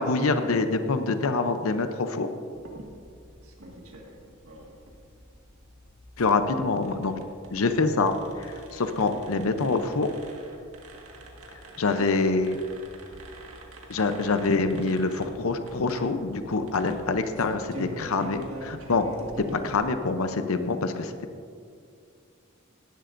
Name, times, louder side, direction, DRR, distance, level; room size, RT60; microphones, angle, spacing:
voice 1, 0.0-2.3 6.2-7.2 7.5-10.1 11.8-12.6 13.9-19.1 19.5-21.1, left 3 dB, 75° left, 8 dB, 0.6 m, -25 dB
sound 1, 2.5-19.8, right 1 dB, 85° right, 1.8 m, -45 dB
17.0 x 11.0 x 2.6 m, 2.3 s
head